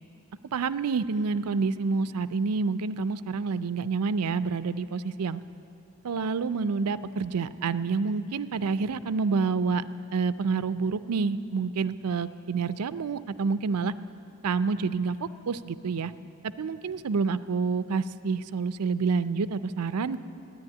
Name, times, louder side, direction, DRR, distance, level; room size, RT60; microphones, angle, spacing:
voice 1, 0.5-5.4 6.0-9.9 10.1-13.9 14.4-16.1 16.6-20.2, right 4 dB, 85° right, 15 dB, 0.5 m, -28 dB
13.5 x 10.0 x 9.6 m, 2.8 s
head